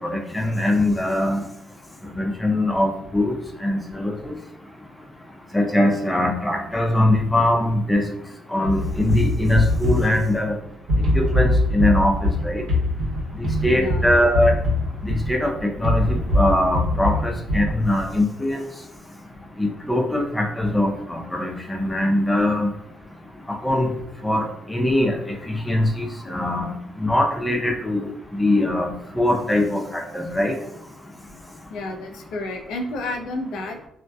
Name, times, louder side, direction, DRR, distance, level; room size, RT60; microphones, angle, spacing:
voice 1, 0.1-1.4 2.1-3.3 3.6-4.3 5.5-8.0 8.5-10.5 11.1-12.6 13.6-14.5 15.0-18.7 19.6-22.7 23.6-23.9 24.2-25.1 25.5-26.7 27.0-28.1 28.4-28.9 29.2-30.6, left 1 dB, 10° left, 1 dB, 0.5 m, -21 dB
sound 1, 8.6-18.2, left 1 dB, 85° right, 1.0 m, -23 dB
voice 2, 13.8-14.1 15.1-15.2 31.7-33.9, left 2 dB, 80° left, 3 dB, 0.4 m, -31 dB
2.6 x 2.1 x 2.2 m, 0.76 s
cardioid pair, 90°, 0 cm